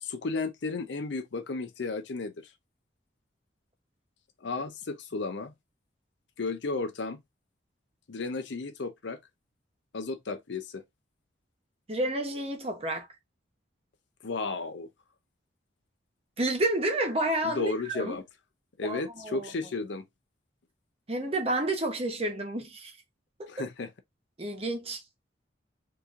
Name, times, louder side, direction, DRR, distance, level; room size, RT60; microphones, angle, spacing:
voice 1, 0.0-2.5 4.4-5.5 6.4-7.2 8.1-9.2 9.9-10.8 14.2-14.9 17.4-18.2 18.8-20.0 23.5-23.9, left 3 dB, 70° left, 0.6 m, -33 dB
voice 2, 11.9-13.1 16.4-18.2 18.8-19.5 21.1-23.0 23.4-23.5 24.4-25.0, right 1 dB, 30° right, 1.0 m, -30 dB
4.0 x 2.8 x 2.4 m
head